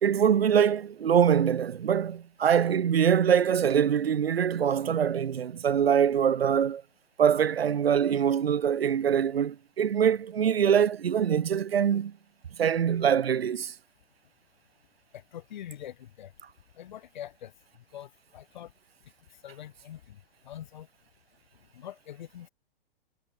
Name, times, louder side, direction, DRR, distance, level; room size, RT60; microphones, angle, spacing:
voice 1, 0.0-6.8 7.2-12.1 12.6-13.7, right 8 dB, 85° right, 2.3 m, -24 dB
voice 2, 15.1-16.3 16.8-17.5 17.9-18.7 19.4-20.9 21.7-22.5, left 11 dB, 50° left, 4.3 m, -44 dB
hypercardioid pair, 170°, 30 cm